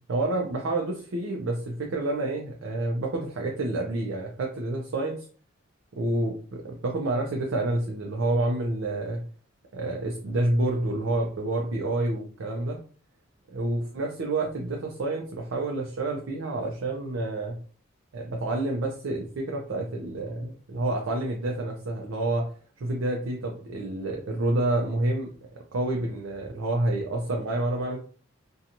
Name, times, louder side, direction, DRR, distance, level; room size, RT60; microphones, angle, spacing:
voice 1, 0.1-5.2 6.0-9.2 9.7-12.8 13.5-17.6 18.1-22.5 22.8-25.3 25.7-28.0, right 2 dB, 70° right, 0 dB, 0.5 m, -28 dB
2.6 x 2.3 x 2.8 m, 0.42 s
head